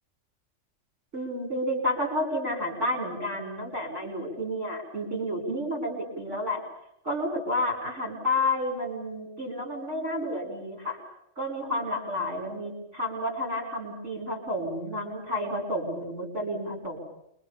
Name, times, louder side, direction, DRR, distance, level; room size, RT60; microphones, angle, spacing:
voice 1, 1.1-6.6 7.0-11.0 11.4-17.0, left 1 dB, 70° right, 1 dB, 7.2 m, -30 dB
28.5 x 24.0 x 7.2 m, 0.78 s
omnidirectional pair, 1.3 m